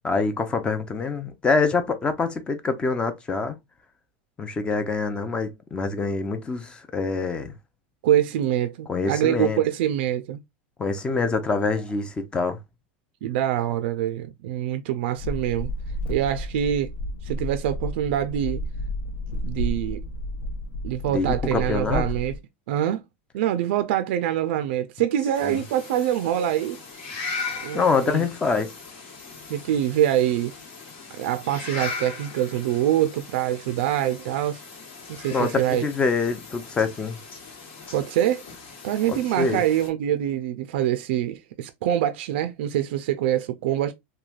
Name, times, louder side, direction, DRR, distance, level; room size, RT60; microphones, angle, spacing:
voice 1, 0.0-3.6 4.4-7.5 8.9-9.6 10.8-12.6 21.1-22.1 25.4-25.6 27.7-28.7 35.3-37.2 39.1-39.6, left 4 dB, 15° left, 0.4 m, -25 dB
voice 2, 8.0-10.4 13.2-15.7 16.1-16.9 17.2-18.6 19.4-20.0 20.8-22.3 22.7-23.0 23.3-26.8 27.6-28.3 29.5-30.5 31.2-34.6 35.1-35.8 37.9-38.4 38.8-43.9, right 11 dB, 70° right, 0.3 m, -25 dB
sound 1, 15.2-22.4, left 1 dB, 85° left, 0.4 m, -31 dB
sound 2, 25.3-39.9, left 4 dB, 70° left, 1.3 m, -39 dB
3.1 x 2.2 x 2.3 m
supercardioid pair, 140°, 6 cm